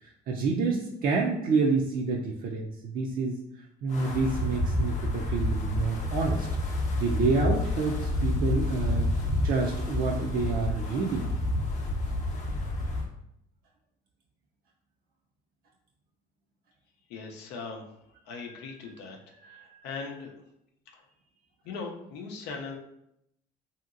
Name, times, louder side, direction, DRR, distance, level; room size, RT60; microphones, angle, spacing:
voice 1, 0.0-3.4 3.8-6.5 7.0-9.1 9.4-11.3 19.5-19.8, right 4 dB, 60° right, -1 dB, 0.4 m, -28 dB
Wind, 3.9-13.1, left 1 dB, 45° left, 0.6 m, -29 dB
voice 2, 17.1-20.3 20.9-21.0 21.6-22.8, left 4 dB, 85° left, 1 dB, 0.5 m, -40 dB
2.8 x 2.8 x 2.5 m, 0.77 s
cardioid pair, 110°, 17 cm